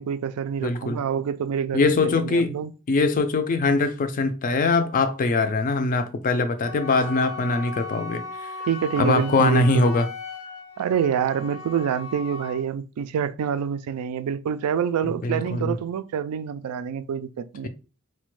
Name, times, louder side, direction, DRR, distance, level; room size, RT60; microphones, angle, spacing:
voice 1, 0.0-2.7 8.7-9.9 10.8-17.7, right 8 dB, 75° right, 0.3 m, -27 dB
voice 2, 0.6-1.0 1.7-2.5 2.9-8.5 9.0-10.1 15.0-15.8, left 3 dB, 35° left, 0.4 m, -22 dB
Wind instrument woodwind instrument, 6.6-12.7, left 4 dB, 75° left, 0.7 m, -37 dB
4.1 x 2.2 x 3.1 m
head